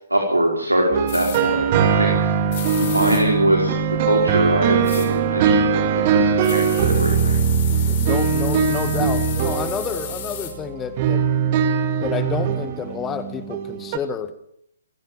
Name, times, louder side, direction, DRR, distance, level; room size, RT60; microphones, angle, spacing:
voice 1, 0.1-2.3 2.8-3.7 4.0-7.4, right 1 dB, 85° right, 1 dB, 4.9 m, -22 dB
sound 1, 0.9-14.0, right 6 dB, 30° right, 2.2 m, -21 dB
sound 2, 1.1-1.4 2.5-3.2 4.8-5.1 6.4-10.5, left 11 dB, 35° left, 5.4 m, -34 dB
voice 2, 7.9-11.2 12.0-14.3, left 7 dB, 15° left, 11 dB, 1.9 m, -29 dB
29.0 x 15.5 x 7.5 m, 0.71 s
figure-of-eight pair, 130°, 0 cm